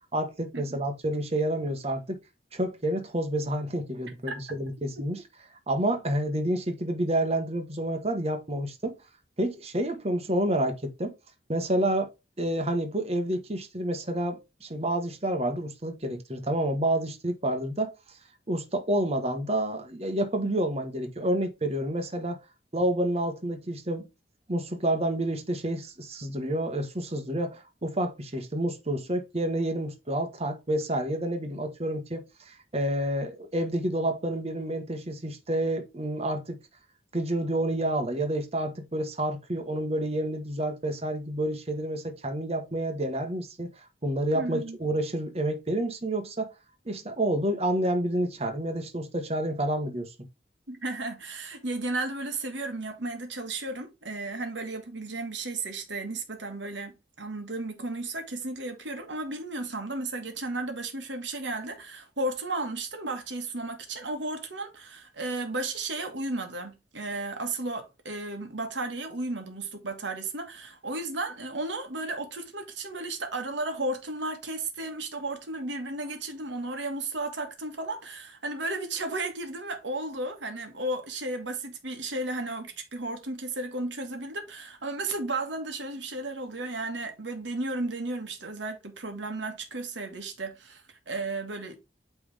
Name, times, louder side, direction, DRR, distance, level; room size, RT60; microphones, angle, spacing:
voice 1, 0.1-2.2 2.5-5.2 5.7-8.9 9.4-11.1 11.5-12.1 12.4-17.9 18.5-22.4 22.7-24.1 24.5-36.6 37.1-46.5 46.8-50.1, right 1 dB, 35° right, 1.3 m, -29 dB
voice 2, 44.3-44.8 50.7-91.8, right 2 dB, 85° right, 1.6 m, -34 dB
8.6 x 3.5 x 3.5 m
head